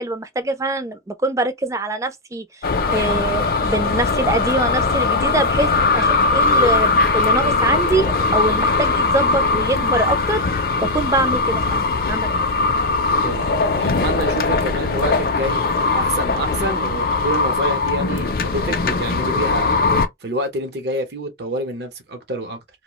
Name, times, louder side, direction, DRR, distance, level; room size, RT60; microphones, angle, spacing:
voice 1, 0.0-10.4 10.8-12.5, right 2 dB, 15° right, 0.3 m, -24 dB
sound 1, 2.6-20.1, left 3 dB, 55° left, 0.4 m, -20 dB
voice 2, 13.2-15.6 15.9-19.7 20.2-22.6, right 1 dB, 70° right, 0.8 m, -27 dB
2.3 x 2.1 x 2.9 m
head